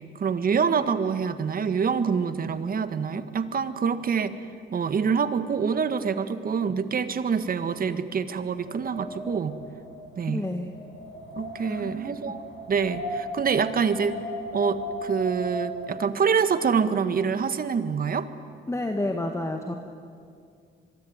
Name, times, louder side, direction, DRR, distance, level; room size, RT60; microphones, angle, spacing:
voice 1, 0.1-4.3 4.7-9.6 10.2-10.5 11.4-14.2 14.5-18.3, right 6 dB, 45° right, 11 dB, 1.7 m, -26 dB
Wind, 8.1-16.0, left 1 dB, 65° left, 6.1 m, -37 dB
voice 2, 10.3-10.7 11.6-12.3 18.7-19.7, left 1 dB, 15° left, 4 dB, 1.9 m, -30 dB
25.5 x 22.5 x 9.6 m, 2.3 s
cardioid pair, 90°, 20 cm